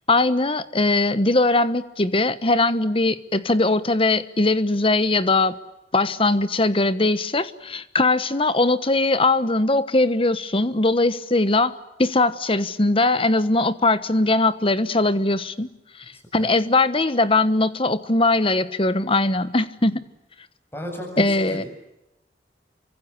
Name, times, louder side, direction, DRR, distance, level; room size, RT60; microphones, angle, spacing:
voice 1, 0.1-5.6 5.9-15.7 16.3-20.0 21.2-21.6, left 2 dB, 30° left, 1.2 m, -20 dB
voice 2, 16.1-16.5 19.9-20.0 20.7-21.7, equal, 15° left, 7.8 m, -35 dB
29.0 x 24.5 x 8.4 m
head